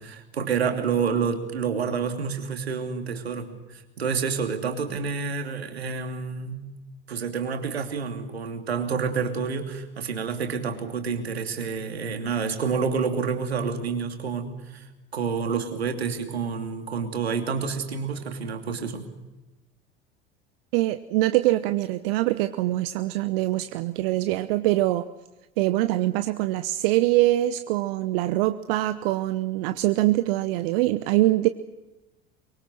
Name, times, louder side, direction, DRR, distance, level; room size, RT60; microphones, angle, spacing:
voice 1, 0.0-6.6 7.1-14.9 15.1-19.1, right 5 dB, 85° right, 6 dB, 2.8 m, -28 dB
voice 2, 20.7-25.0 25.6-31.5, right 17 dB, 65° right, 11 dB, 1.0 m, -23 dB
23.5 x 23.5 x 6.4 m, 1.1 s
hypercardioid pair, 70°, 31 cm